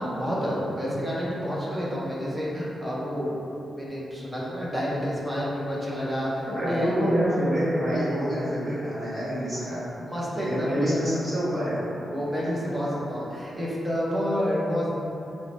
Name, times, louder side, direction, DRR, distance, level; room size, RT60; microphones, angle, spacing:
voice 1, 0.0-3.4 3.8-7.0 9.5-10.8 12.1-14.9, equal, 10° right, -6 dB, 0.7 m, -29 dB
voice 2, 6.5-9.8 10.4-11.9 12.4-12.5, equal, 25° right, -12 dB, 1.4 m, -26 dB
4.2 x 2.1 x 4.2 m, 2.8 s
wide cardioid pair, 180°, 0 cm